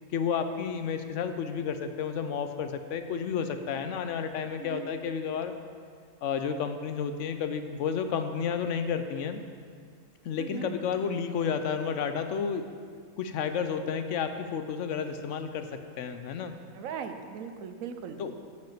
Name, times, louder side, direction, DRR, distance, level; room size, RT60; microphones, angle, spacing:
voice 1, 0.1-5.5 6.2-9.4 10.2-12.6 13.2-15.7 16.0-16.5 18.2-18.3, left 6 dB, 70° left, 8 dB, 0.9 m, -31 dB
voice 2, 10.4-10.7 16.7-18.2, right 7 dB, 85° right, 8 dB, 1.1 m, -39 dB
8.0 x 5.3 x 7.3 m, 2.1 s
omnidirectional pair, 1.4 m